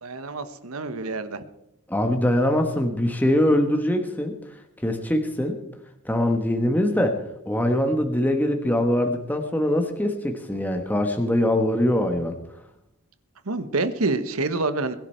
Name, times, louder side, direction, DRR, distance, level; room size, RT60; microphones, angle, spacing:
voice 1, 0.0-1.4 13.4-14.9, right 3 dB, 90° right, 11 dB, 1.2 m, -27 dB
voice 2, 1.9-4.3 4.8-5.6 6.0-7.2 7.4-12.4, left 1 dB, 10° left, 4 dB, 1.3 m, -22 dB
21.5 x 10.5 x 4.5 m, 0.84 s
head